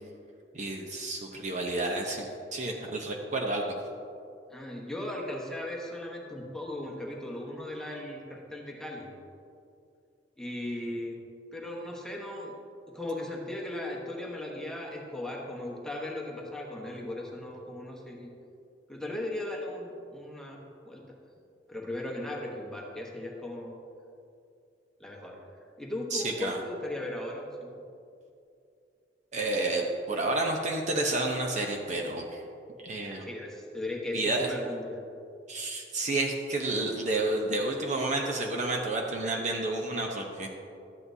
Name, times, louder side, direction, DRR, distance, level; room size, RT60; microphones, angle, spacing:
voice 1, 0.5-3.6 26.1-26.6 29.3-32.4 32.8-33.3 34.1-34.5 35.5-40.5, right 2 dB, 40° right, 1 dB, 0.8 m, -30 dB
voice 2, 4.5-9.1 10.4-11.2 11.5-12.5 12.9-18.3 18.9-21.0 21.7-23.7 25.0-25.4 25.8-27.8 33.1-35.0, left 1 dB, 5° left, -2 dB, 1.1 m, -37 dB
12.5 x 8.4 x 2.7 m, 2.5 s
head